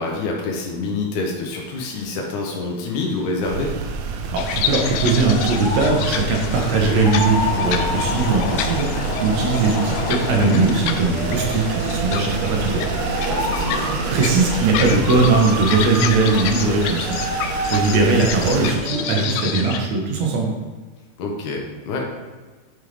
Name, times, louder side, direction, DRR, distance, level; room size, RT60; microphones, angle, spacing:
voice 1, 0.0-3.7 13.3-14.0 21.2-22.2, left 3 dB, 65° left, 0 dB, 2.3 m, -27 dB
sound 1, 1.5-19.5, equal, 35° left, 2.3 m, -31 dB
sound 2, 3.4-18.8, right 4 dB, 90° right, 2.6 m, -28 dB
voice 2, 4.3-13.1 14.1-17.2 17.7-20.5, right 3 dB, 60° right, 0 dB, 2.0 m, -20 dB
sound 3, 4.4-19.8, left 8 dB, 80° left, 2.0 m, -29 dB
9.2 x 5.5 x 3.4 m, 1.3 s
omnidirectional pair, 4.5 m